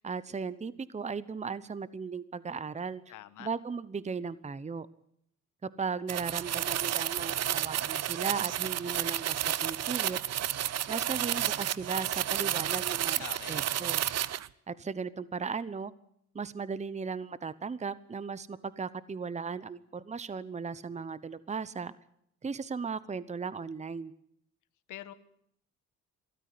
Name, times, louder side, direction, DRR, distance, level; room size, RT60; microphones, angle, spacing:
voice 1, 0.0-3.0 3.4-4.9 5.6-10.2 10.9-14.0 14.7-15.9 16.3-21.9 22.4-24.1, right 5 dB, 25° right, 16 dB, 0.9 m, -37 dB
voice 2, 3.1-3.5 13.2-13.6 24.9-25.1, left 13 dB, 80° left, 13 dB, 1.5 m, -44 dB
sound 1, 6.1-14.5, right 11 dB, 60° right, 0.8 m, -31 dB
23.0 x 14.0 x 9.5 m, 0.71 s
cardioid pair, 90°, 30 cm